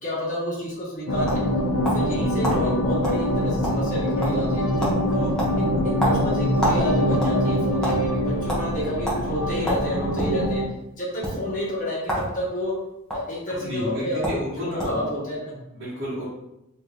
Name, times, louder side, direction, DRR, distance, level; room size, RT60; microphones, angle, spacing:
voice 1, 0.0-1.4 1.9-5.3 5.6-10.6 11.0-12.7 13.1-15.6, left 1 dB, 35° left, -6 dB, 1.4 m, -30 dB
sound 1, 0.8-2.1 2.4-2.6 3.0-3.2 3.5-4.0 4.2-4.5 4.8-5.0 5.4-6.8 7.1-8.0 8.5-8.6 9.0-9.2 9.6-10.4 11.1-11.3 12.0-12.3 12.6-13.2 13.9-14.0 14.2-14.4 14.8-15.0, equal, 5° left, 1.0 m, -27 dB
sound 2, 1.1-10.7, equal, 70° left, 0.6 m, -24 dB
voice 2, 13.5-15.1 15.7-16.2, left 1 dB, 55° right, -9 dB, 1.1 m, -31 dB
3.4 x 2.8 x 3.5 m, 0.89 s
head